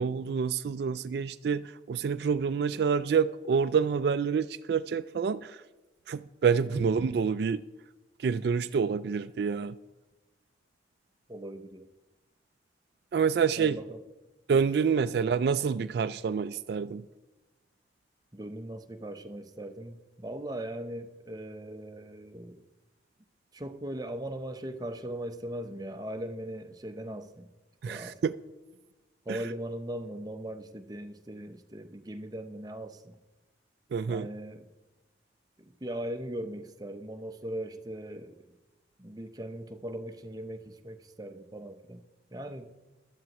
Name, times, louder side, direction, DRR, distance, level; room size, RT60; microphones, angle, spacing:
voice 1, 0.0-5.6 6.1-7.6 8.2-9.8 13.1-13.8 14.5-17.0 27.8-28.3 29.3-29.4 33.9-34.3, right 6 dB, 60° right, 0.3 m, -27 dB
voice 2, 11.3-11.9 13.6-14.0 18.3-22.6 23.5-27.5 27.8-28.2 29.3-33.2 34.1-34.7 35.8-38.4 39.0-42.0 42.3-42.7, right 1 dB, 20° right, 0.6 m, -39 dB
17.0 x 12.5 x 3.0 m
head